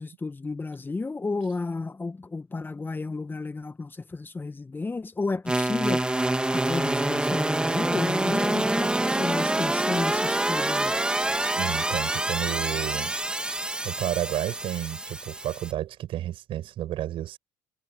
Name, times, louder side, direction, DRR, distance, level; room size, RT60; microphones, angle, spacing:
voice 1, 0.0-6.1 6.5-11.0, left 3 dB, 20° left, 1.6 m, -32 dB
sound 1, 5.5-15.7, right 1 dB, 10° right, 3.1 m, -26 dB
voice 2, 11.6-13.1 13.8-17.4, right 13 dB, 60° right, 7.3 m, -31 dB
hypercardioid pair, 75°, 10 cm